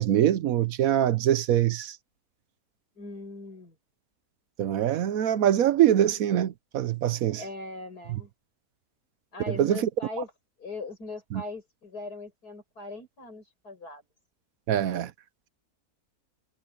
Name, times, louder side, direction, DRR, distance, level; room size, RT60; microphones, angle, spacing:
voice 1, 0.0-2.0 4.6-7.4 8.1-8.2 9.5-9.9 11.3-11.4 14.7-15.1, right 11 dB, 70° right, 1.1 m, -24 dB
voice 2, 3.0-3.8 7.4-8.3 9.3-10.3 10.6-14.0, left 3 dB, 80° left, 7.3 m, -40 dB
omnidirectional pair, 1.6 m